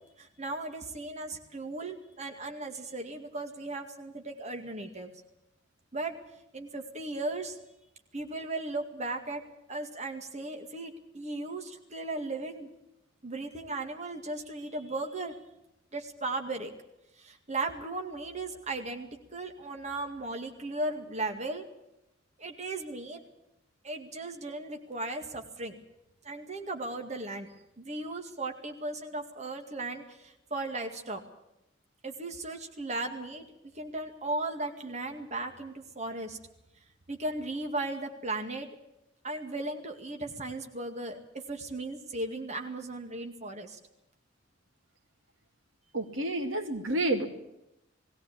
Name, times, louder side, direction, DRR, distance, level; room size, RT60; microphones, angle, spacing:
voice 1, 0.2-5.1 5.9-6.2 6.5-7.6 8.1-9.4 9.7-12.7 13.2-15.4 15.9-16.7 17.2-21.7 22.4-23.2 23.8-25.8 26.2-27.5 27.8-31.2 32.0-33.5 33.7-36.4 37.1-38.7 39.2-43.8, right 2 dB, 35° right, 4 dB, 2.1 m, -36 dB
voice 2, 45.9-47.3, right 2 dB, 85° right, 6 dB, 2.5 m, -29 dB
19.5 x 17.5 x 8.6 m, 0.87 s
head